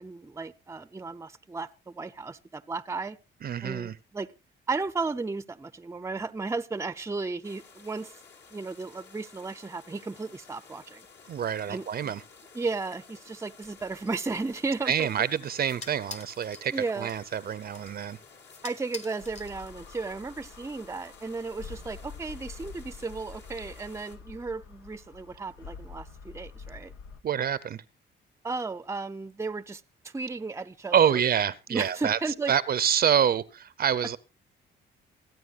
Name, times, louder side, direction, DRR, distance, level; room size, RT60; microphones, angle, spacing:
voice 1, 0.0-3.2 3.6-4.3 4.7-8.1 8.5-11.0 11.7-12.1 12.5-15.1 16.7-17.1 18.6-26.9 28.4-31.2 31.7-32.5, right 3 dB, 15° right, 0.6 m, -34 dB
voice 2, 3.4-3.9 11.3-12.2 14.9-18.2 27.2-27.8 30.9-32.2 32.5-34.2, right 8 dB, 50° right, 0.7 m, -26 dB
sound 1, 7.4-24.2, left 5 dB, 65° left, 2.1 m, -54 dB
sound 2, 13.6-20.1, left 3 dB, 35° left, 1.3 m, -48 dB
sound 3, 19.2-27.2, left 5 dB, 90° left, 1.4 m, -46 dB
27.0 x 9.2 x 2.5 m
cardioid pair, 90°, 20 cm